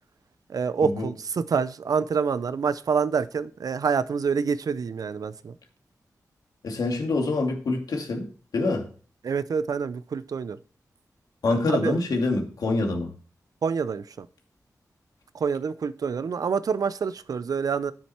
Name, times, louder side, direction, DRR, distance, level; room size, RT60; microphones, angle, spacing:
voice 1, 0.5-5.5 9.2-10.6 11.5-12.0 13.6-14.3 15.3-17.9, right 6 dB, 75° right, 0.6 m, -27 dB
voice 2, 6.6-8.3 8.5-8.9 11.4-13.1, left 3 dB, 85° left, 2.4 m, -26 dB
10.5 x 7.6 x 4.4 m
wide cardioid pair, 95°, 6 cm